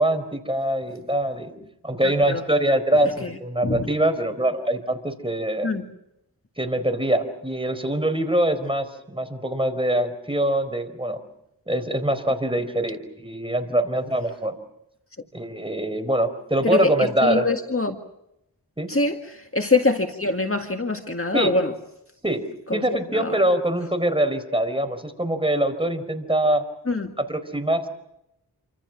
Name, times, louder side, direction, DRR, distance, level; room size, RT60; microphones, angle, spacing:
voice 1, 0.0-1.5 1.8-5.7 6.6-11.2 11.7-14.6 15.3-17.4 18.8-18.9 21.3-21.5 22.2-22.4 22.7-26.6 27.3-27.9, right 1 dB, 15° right, 7 dB, 4.4 m, -23 dB
voice 2, 2.0-2.4 3.2-3.4 3.6-3.9 5.6-5.9 16.6-18.0 18.9-21.7 22.7-23.4 26.9-27.1, left 3 dB, 35° left, 5 dB, 1.9 m, -24 dB
28.0 x 25.5 x 6.1 m, 0.82 s
wide cardioid pair, 55°, 39 cm